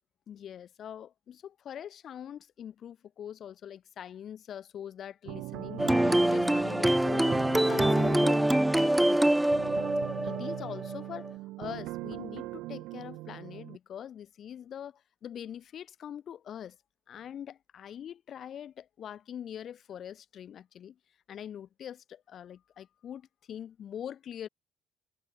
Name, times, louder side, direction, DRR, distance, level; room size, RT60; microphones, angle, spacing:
voice 1, 0.3-7.4 7.7-9.4 10.2-11.3 11.6-16.8 17.1-21.0 21.3-24.5, left 9 dB, 45° left, 2.2 m, -43 dB
sound 1, 5.3-13.8, right 19 dB, 85° right, 0.6 m, -40 dB
sound 2, 5.8-11.3, right 1 dB, 5° right, 0.4 m, -25 dB
cardioid pair, 145°, 0 cm